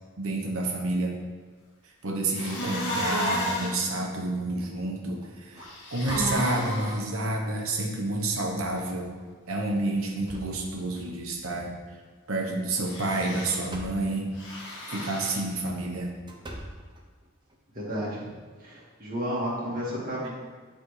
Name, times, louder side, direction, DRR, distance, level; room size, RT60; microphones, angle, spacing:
voice 1, 0.2-1.2 2.0-9.1 9.5-11.7 12.3-16.1, right 2 dB, 85° right, 0 dB, 0.9 m, -29 dB
sound 1, 2.4-3.8 5.6-7.0 12.8-13.6 14.4-15.4, left 1 dB, 60° left, 1.2 m, -32 dB
sound 2, 4.6-4.9 5.2-6.8 7.5-7.6 8.1-8.2 9.1-9.3 9.8-11.2 12.7-14.2 15.3-17.6, right 1 dB, 20° right, 0.6 m, -44 dB
voice 2, 17.7-18.3 18.6-20.3, equal, 40° right, -6 dB, 1.7 m, -32 dB
9.6 x 3.4 x 3.2 m, 1.5 s
head